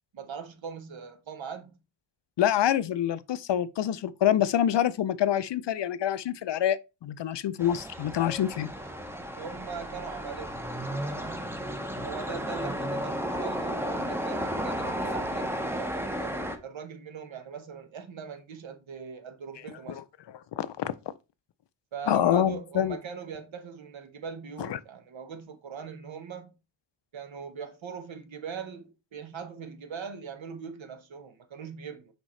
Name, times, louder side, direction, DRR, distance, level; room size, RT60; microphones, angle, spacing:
voice 1, 0.1-1.8 9.2-10.6 12.0-20.0 21.9-26.5 27.1-32.1, right 6 dB, 65° right, 1.2 m, -41 dB
voice 2, 2.4-8.7 19.9-20.0 20.5-20.9 22.1-23.0 24.6-24.8, left 10 dB, 60° left, 0.5 m, -26 dB
sound 1, 7.6-16.6, equal, 5° right, 0.7 m, -33 dB
6.2 x 5.2 x 3.1 m
wide cardioid pair, 145°, 49 cm